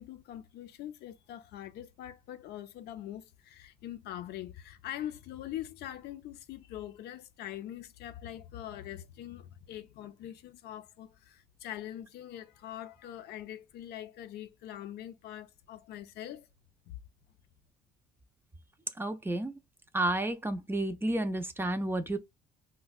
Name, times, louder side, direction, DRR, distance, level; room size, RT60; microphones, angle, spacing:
voice 1, 0.0-16.5 16.9-17.0, left 12 dB, 75° left, 0.5 m, -43 dB
voice 2, 19.0-19.5 19.9-22.2, right 1 dB, 15° right, 0.5 m, -31 dB
4.9 x 2.1 x 2.3 m
cardioid pair, 110°, 17 cm